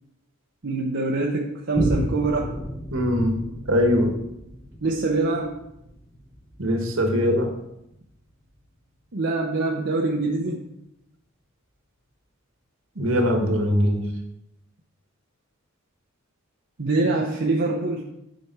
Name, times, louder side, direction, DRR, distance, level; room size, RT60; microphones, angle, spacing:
voice 1, 0.6-2.5 4.8-5.5 9.1-10.6 16.8-18.0, right 3 dB, 60° right, -1 dB, 0.9 m, -24 dB
Boom, 1.7-8.7 9.2-9.3, equal, 25° left, 1.2 m, -33 dB
voice 2, 2.9-3.4 3.7-4.1 6.6-7.5 12.9-14.1, equal, 75° right, 3 dB, 1.6 m, -21 dB
9.5 x 5.2 x 4.6 m, 0.84 s
head